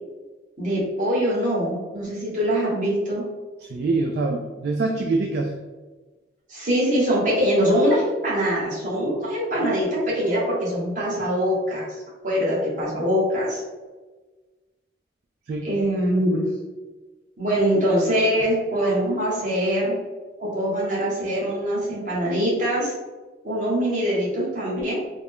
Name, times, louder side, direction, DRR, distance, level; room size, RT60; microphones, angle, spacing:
voice 1, 0.6-3.2 6.5-12.0 12.2-13.6 15.6-16.4 17.4-20.0 20.4-22.9 23.4-24.9, equal, 40° right, -6 dB, 1.2 m, -23 dB
voice 2, 3.7-5.5 15.5-15.7, right 3 dB, 55° right, 2 dB, 0.3 m, -24 dB
3.6 x 2.2 x 3.5 m, 1.3 s
head